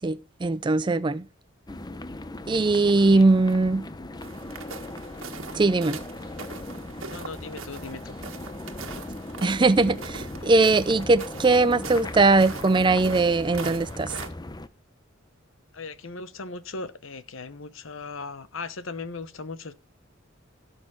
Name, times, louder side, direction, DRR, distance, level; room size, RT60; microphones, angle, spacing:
voice 1, 0.0-1.2 2.5-3.9 5.5-6.0 9.4-14.2, right 3 dB, 25° right, 0.4 m, -20 dB
sound 1, 1.7-14.7, left 2 dB, 20° left, 0.7 m, -38 dB
sound 2, 4.2-14.3, right 5 dB, 85° right, 1.6 m, -42 dB
voice 2, 7.0-8.2 15.7-19.7, left 3 dB, 75° left, 1.0 m, -38 dB
17.0 x 6.4 x 3.8 m
head